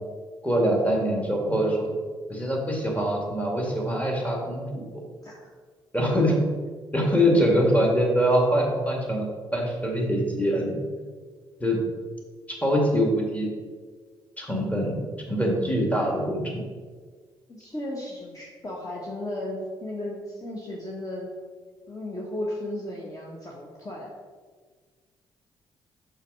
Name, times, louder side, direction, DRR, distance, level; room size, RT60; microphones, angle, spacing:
voice 1, 0.4-1.9 2.3-4.8 5.9-6.4 6.9-9.3 9.5-10.8 11.6-11.8 12.5-13.5 14.4-16.6, equal, 10° left, 0 dB, 2.0 m, -24 dB
voice 2, 17.5-21.3 21.9-24.1, left 1 dB, 30° left, -3 dB, 1.4 m, -35 dB
5.6 x 5.2 x 4.8 m, 1.6 s
hypercardioid pair, 45°, 11 cm